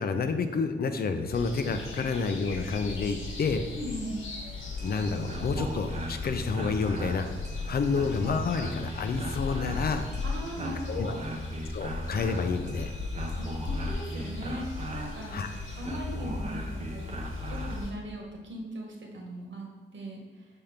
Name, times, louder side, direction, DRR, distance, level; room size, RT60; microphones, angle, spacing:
voice 1, 0.0-3.6 4.8-7.3 7.7-10.1 10.9-11.1 11.7-12.9 15.3-15.5, left 4 dB, 50° left, 8 dB, 0.5 m, -29 dB
sound 1, 1.3-17.9, left 4 dB, 85° left, 1.2 m, -38 dB
voice 2, 3.7-4.3 10.2-11.4 13.4-15.4 15.8-17.2 17.5-20.5, equal, 70° right, 0 dB, 1.4 m, -39 dB
sound 2, 4.6-17.9, right 1 dB, 35° right, 0.7 m, -38 dB
5.8 x 4.5 x 5.1 m, 1.4 s
wide cardioid pair, 165°, 20 cm